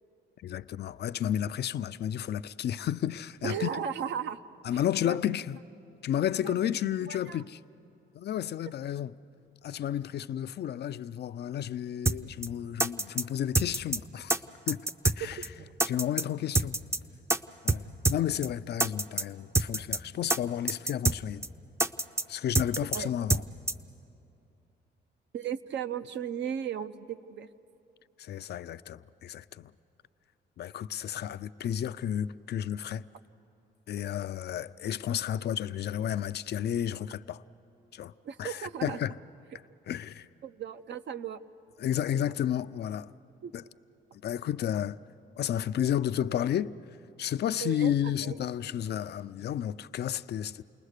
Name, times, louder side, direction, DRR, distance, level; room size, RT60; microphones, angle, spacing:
voice 1, 0.4-3.7 4.6-5.6 6.0-7.6 8.1-9.1 9.6-15.4 15.9-16.8 17.6-21.5 22.3-23.4 28.2-29.7 30.6-33.1 33.9-37.4 37.9-38.1 38.4-39.2 39.9-40.3 41.8-43.1 43.5-43.6 44.2-45.0 45.4-46.8 47.2-50.6, left 10 dB, 55° left, 0.5 m, -32 dB
voice 2, 3.4-4.4 5.0-5.2 6.4-6.6 7.1-7.4 15.3-15.7 22.9-23.1 25.3-27.5 38.2-39.0 39.5-39.6 40.4-41.4 42.1-42.3 43.4-43.5 47.6-47.9 48.2-48.5, right 8 dB, 65° right, 0.7 m, -36 dB
sound 1, 12.1-12.2 12.4-12.5 12.8-13.2 13.5-14.0 14.3-14.4 14.7-15.2 15.4-15.5 15.8-16.2 16.5-17.0 17.3-17.4 17.7-17.8 18.0-18.2 18.4-18.5 18.8-19.2 19.5-20.0 20.3-20.4 20.7-21.2 21.4-21.5 21.8-22.2 22.5-23.0 23.3-23.4 23.7-23.8, right 2 dB, 15° right, 0.6 m, -26 dB
29.5 x 20.0 x 6.6 m
cardioid pair, 90°, 20 cm